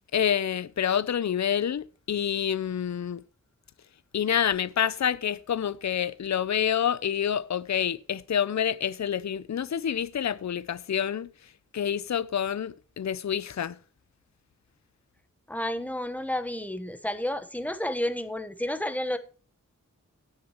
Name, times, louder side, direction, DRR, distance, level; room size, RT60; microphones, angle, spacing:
voice 1, 0.1-3.2 4.1-11.3 11.7-13.8, left 9 dB, 60° left, 0.5 m, -27 dB
voice 2, 15.5-19.2, left 1 dB, 5° left, 1.1 m, -31 dB
17.5 x 6.6 x 3.0 m
wide cardioid pair, 65°, 31 cm